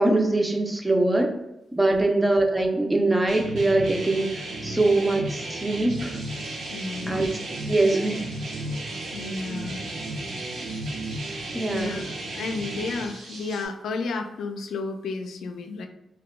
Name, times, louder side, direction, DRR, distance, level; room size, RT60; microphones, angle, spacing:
voice 1, 0.0-1.4 1.7-6.2 7.1-7.3 7.7-8.3 11.5-12.0, right 2 dB, 15° right, 3 dB, 0.3 m, -23 dB
sound 1, 3.3-13.0, right 1 dB, 70° right, 0.5 m, -34 dB
sound 2, 5.9-13.7, right 2 dB, 85° right, 0.8 m, -44 dB
voice 2, 6.7-7.2 9.1-9.8 11.7-15.9, left 3 dB, 85° left, 6 dB, 0.3 m, -32 dB
2.7 x 2.2 x 3.4 m, 0.89 s
wide cardioid pair, 170°, 0 cm